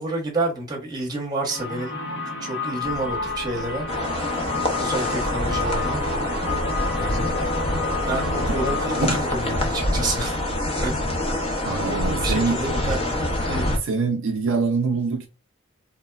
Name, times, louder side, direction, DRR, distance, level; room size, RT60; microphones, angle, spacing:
voice 1, 0.0-2.0 2.4-3.9 4.8-6.0 7.0-7.6 8.1-10.4 10.8-10.9 11.4-11.6 11.9-13.2 13.5-13.6, right 2 dB, 20° right, 0.9 m, -29 dB
sound 1, 1.5-11.2, left 3 dB, 50° left, 0.8 m, -31 dB
sound 2, 2.8-10.3, left 1 dB, 85° left, 0.6 m, -41 dB
sound 3, 3.9-13.8, left 1 dB, 25° left, 0.5 m, -26 dB
voice 2, 11.7-12.6 13.7-15.3, right 4 dB, 60° right, 0.4 m, -24 dB
3.1 x 2.1 x 2.2 m
head